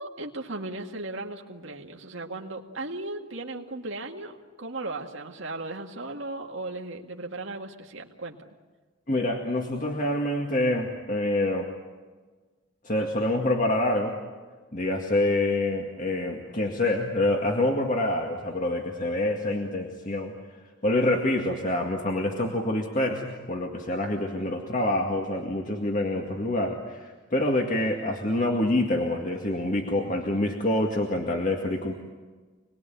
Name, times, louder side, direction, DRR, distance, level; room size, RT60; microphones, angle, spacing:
voice 1, 0.0-8.5, right 2 dB, 75° right, 1 dB, 2.0 m, -36 dB
voice 2, 9.1-11.7 12.8-14.2 14.7-20.3 20.8-31.9, left 1 dB, 40° left, 1 dB, 2.1 m, -26 dB
27.5 x 20.5 x 9.2 m, 1.4 s
head